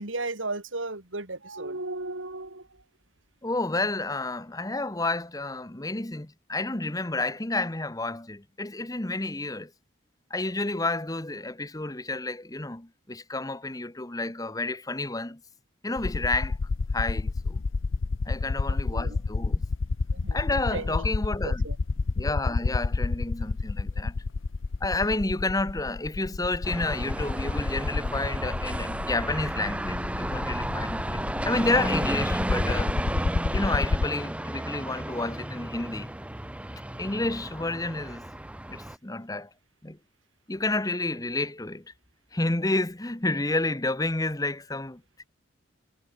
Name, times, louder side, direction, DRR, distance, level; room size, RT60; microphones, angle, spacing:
voice 1, 0.0-2.7 18.7-19.2 20.1-21.1 21.4-21.8, right 2 dB, 80° right, 4.1 m, -35 dB
voice 2, 3.4-9.7 10.3-15.4 15.8-16.6 16.9-17.6 18.3-19.6 20.3-21.7 22.1-24.1 24.8-33.0 33.5-36.1 37.0-38.2 38.7-39.5 39.8-40.0 40.5-41.8 42.3-45.2, left 2 dB, 20° left, 1.2 m, -30 dB
sound 1, 16.0-34.1, left 3 dB, 90° left, 0.6 m, -29 dB
sound 2, 26.6-39.0, right 1 dB, 5° right, 0.6 m, -33 dB
head